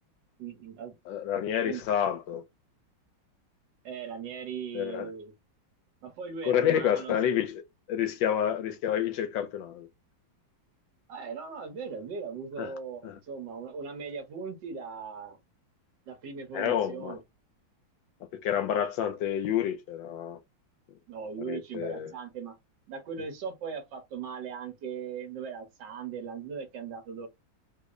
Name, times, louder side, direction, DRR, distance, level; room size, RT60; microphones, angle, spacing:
voice 1, 0.4-1.0 1.6-1.8 3.8-5.3 6.0-7.1 11.1-15.4 16.1-17.2 21.1-22.6 22.9-27.3, right 6 dB, 65° right, 1.6 m, -39 dB
voice 2, 1.1-2.4 4.7-5.1 6.4-7.6 7.9-9.9 12.6-12.7 13.0-13.2 16.5-17.2 18.4-20.4 21.4-22.1, left 9 dB, 75° left, 1.3 m, -29 dB
3.5 x 2.1 x 3.6 m
omnidirectional pair, 2.2 m